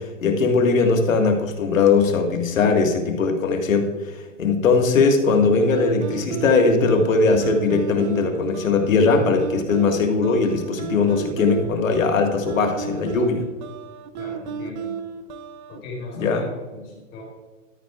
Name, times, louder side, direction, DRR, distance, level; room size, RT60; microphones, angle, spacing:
voice 1, 0.0-3.9 4.4-13.4 16.2-16.4, left 4 dB, 80° left, 4 dB, 1.7 m, -20 dB
sound 1, 5.7-15.8, right 7 dB, 35° right, 0.6 m, -33 dB
voice 2, 14.2-14.9 15.7-17.2, left 3 dB, 30° left, -1 dB, 3.2 m, -37 dB
13.0 x 9.2 x 2.4 m, 1.2 s
hypercardioid pair, 140°, 39 cm